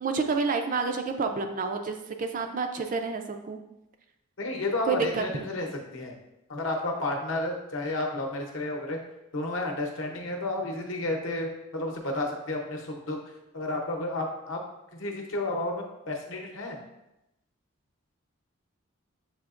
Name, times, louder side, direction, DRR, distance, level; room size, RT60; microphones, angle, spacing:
voice 1, 0.0-3.6 4.8-5.5, right 4 dB, 40° right, 5 dB, 0.3 m, -29 dB
voice 2, 4.4-6.1 6.5-9.0 9.3-13.2 13.5-14.6 14.9-16.8, left 2 dB, 65° left, 1 dB, 0.8 m, -31 dB
7.0 x 2.8 x 2.5 m, 0.90 s
head